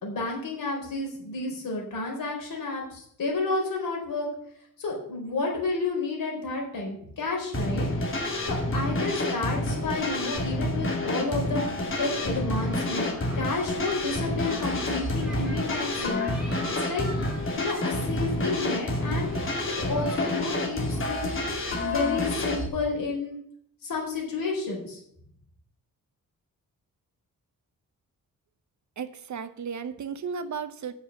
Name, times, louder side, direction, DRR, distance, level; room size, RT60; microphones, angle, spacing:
voice 1, 0.0-4.3 4.8-7.9 8.5-16.3 16.5-17.1 17.6-23.4 23.8-25.0, left 3 dB, 70° left, 0 dB, 4.1 m, -31 dB
sound 1, 7.5-22.7, left 1 dB, 35° left, 2.5 m, -29 dB
sound 2, 12.5-21.9, right 1 dB, ahead, 3.2 m, -45 dB
voice 2, 29.0-30.9, right 6 dB, 55° right, 11 dB, 0.8 m, -34 dB
8.4 x 7.0 x 6.5 m, 0.68 s
wide cardioid pair, 160°, 35 cm